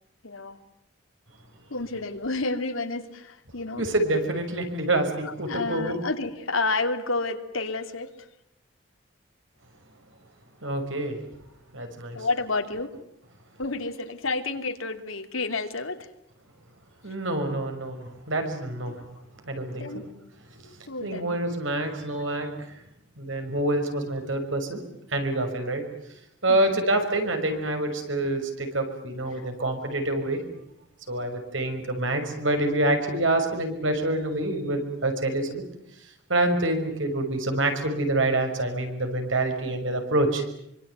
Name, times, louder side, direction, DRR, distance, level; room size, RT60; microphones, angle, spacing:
voice 1, 0.2-0.6 1.7-3.8 5.2-8.1 12.1-12.9 13.6-16.1 18.8-19.0 19.8-20.0 20.9-21.4 26.5-26.8 29.3-29.4, left 3 dB, 90° left, 7 dB, 2.7 m, -30 dB
voice 2, 3.8-6.0 10.6-11.2 11.7-12.2 17.0-18.9 19.5-19.9 20.6-20.7 21.0-22.5 23.2-24.8 25.1-25.8 26.4-30.4 31.1-35.6 36.3-40.4, right 1 dB, 70° right, 5 dB, 6.1 m, -26 dB
25.5 x 25.0 x 9.4 m, 0.78 s
head